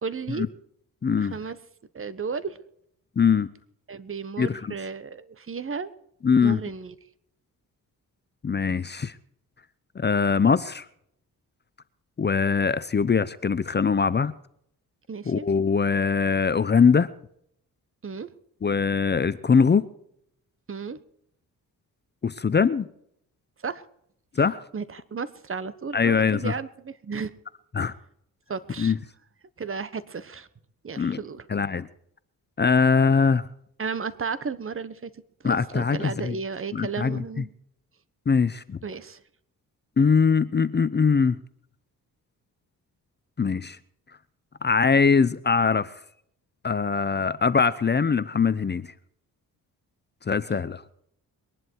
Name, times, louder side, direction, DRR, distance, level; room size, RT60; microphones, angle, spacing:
voice 1, 0.0-0.5 1.2-1.6 1.9-2.6 3.9-5.9 6.4-6.9 15.1-15.5 18.0-18.3 20.7-21.0 23.6-23.8 24.7-27.3 28.5-28.9 29.6-30.5 30.8-31.4 33.8-35.1 35.4-37.5 38.8-39.2, right 5 dB, 35° right, 15 dB, 1.2 m, -33 dB
voice 2, 1.0-1.3 3.2-3.5 4.4-4.7 6.2-6.6 8.4-9.1 10.0-10.9 12.2-14.3 15.3-17.1 18.6-19.9 22.2-22.9 24.4-24.6 25.9-26.5 27.7-27.9 28.8-29.0 31.0-31.2 31.5-31.9 32.6-33.4 35.4-36.4 36.7-37.4 38.3-38.8 40.0-41.4 43.4-43.8 44.6-45.9 46.6-48.9 50.3-50.8, left 5 dB, 30° left, 16 dB, 0.7 m, -22 dB
22.5 x 11.0 x 4.6 m, 0.71 s
cardioid pair, 95°, 36 cm